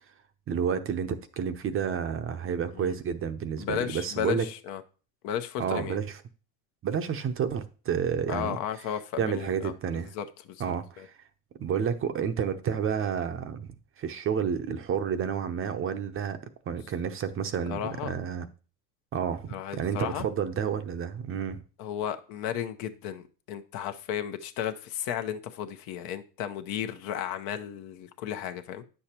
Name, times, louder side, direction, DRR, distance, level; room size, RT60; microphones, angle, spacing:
voice 1, 0.5-4.5 5.6-6.2 6.8-8.6 9.2-10.1 10.6-11.1 11.6-13.7 14.0-16.4 16.7-18.5 19.1-21.6, right 7 dB, 30° right, 0.7 m, -30 dB
voice 2, 3.6-4.8 5.2-6.0 8.3-9.7 10.1-10.6 11.0-11.1 17.7-18.1 19.5-20.2 21.8-28.8, left 9 dB, 55° left, 1.0 m, -34 dB
9.8 x 6.7 x 2.9 m
supercardioid pair, 110°, 43 cm